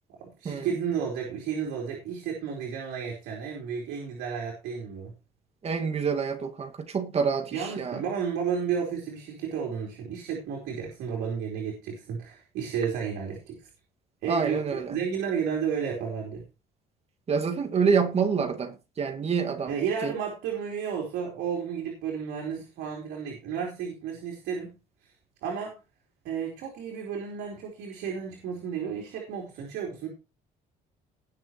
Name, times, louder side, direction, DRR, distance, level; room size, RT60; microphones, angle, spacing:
voice 1, 0.1-5.1 7.5-13.7 14.2-16.4 19.7-24.7 25.0-25.1 25.4-25.8 26.2-30.1, right 7 dB, 85° right, 4.0 m, -32 dB
voice 2, 5.6-8.0 14.3-14.9 17.3-19.7 20.0-20.1, right 5 dB, 40° right, 2.1 m, -27 dB
19.5 x 6.7 x 3.2 m
cardioid pair, 110°, 17 cm